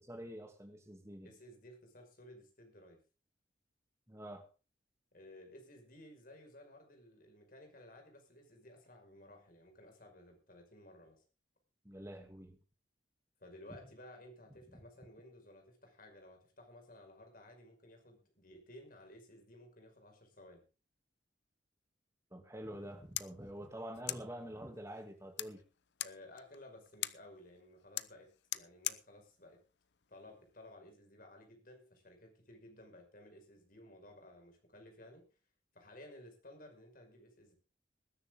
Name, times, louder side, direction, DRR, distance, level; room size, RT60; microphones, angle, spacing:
voice 1, 0.1-1.3 4.1-4.5 11.8-12.6 14.7-14.8 22.3-25.6, right 1 dB, 15° right, 5 dB, 2.6 m, -47 dB
voice 2, 1.2-3.0 5.1-11.2 13.4-20.6 26.0-29.6 30.1-35.3 35.7-37.6, left 1 dB, 50° left, 3 dB, 5.4 m, -56 dB
sound 1, 22.7-30.8, left 14 dB, 70° left, 0.7 m, -46 dB
20.0 x 10.5 x 3.7 m, 0.33 s
head